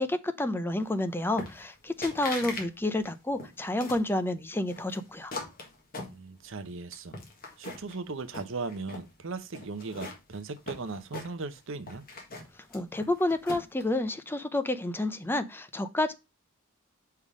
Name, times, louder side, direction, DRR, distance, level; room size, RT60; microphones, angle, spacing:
voice 1, 0.0-5.3 12.7-16.1, left 2 dB, 10° left, 0.5 m, -30 dB
sound 1, 1.4-1.8 2.0-2.7 3.0-4.1 4.7-6.6 6.9-8.0 8.3-9.1 9.5-11.6 11.9-13.8, left 2 dB, 45° left, 1.6 m, -40 dB
voice 2, 6.1-7.2 7.6-12.0, right 3 dB, 65° right, 0.8 m, -38 dB
5.6 x 3.5 x 4.8 m
head